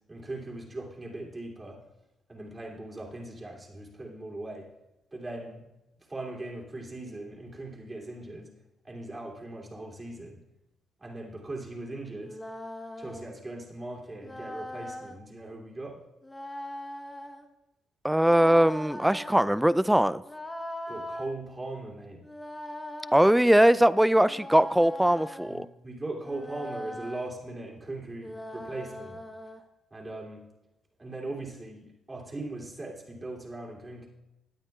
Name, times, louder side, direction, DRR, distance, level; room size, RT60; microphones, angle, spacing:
voice 1, 0.1-1.8 2.3-4.7 5.1-5.6 6.1-8.5 8.8-10.4 11.0-12.4 13.0-16.0 20.9-22.3 25.5-29.2 29.9-30.5 31.0-34.1, right 2 dB, 25° right, -1 dB, 2.8 m, -39 dB
sound 1, 12.2-13.3 14.2-15.2 16.2-17.5 18.2-19.5 20.2-21.3 22.2-23.4 24.2-25.6 26.2-27.3 28.2-29.6, left 1 dB, 15° left, 1.1 m, -40 dB
voice 2, 18.0-20.2 23.1-25.7, right 1 dB, 5° right, 16 dB, 0.3 m, -21 dB
17.5 x 8.9 x 2.4 m, 0.93 s
supercardioid pair, 65°, 0 cm